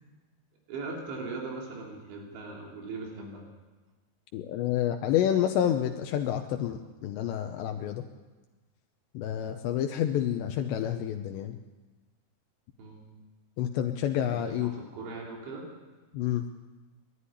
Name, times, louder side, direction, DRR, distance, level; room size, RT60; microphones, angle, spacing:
voice 1, 0.7-3.4 12.8-13.0 14.3-15.7, right 3 dB, 85° right, -1 dB, 5.6 m, -39 dB
voice 2, 4.3-8.0 9.1-11.6 13.6-14.7 16.1-16.5, left 10 dB, 80° left, 5 dB, 3.0 m, -29 dB
21.0 x 13.0 x 9.9 m, 1.2 s
omnidirectional pair, 5.1 m